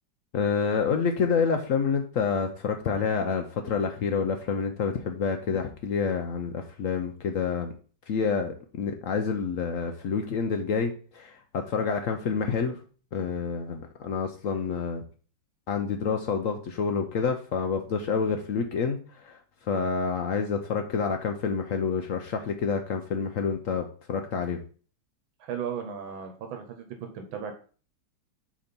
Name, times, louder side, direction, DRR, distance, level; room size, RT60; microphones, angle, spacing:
voice 1, 0.3-7.7 8.1-12.8 13.1-15.0 15.7-19.4 19.7-24.6, left 5 dB, 80° left, 5 dB, 0.7 m, -28 dB
voice 2, 25.4-26.9 27.1-27.6, right 7 dB, 80° right, 5 dB, 1.6 m, -35 dB
5.2 x 4.2 x 5.2 m, 0.40 s
omnidirectional pair, 2.1 m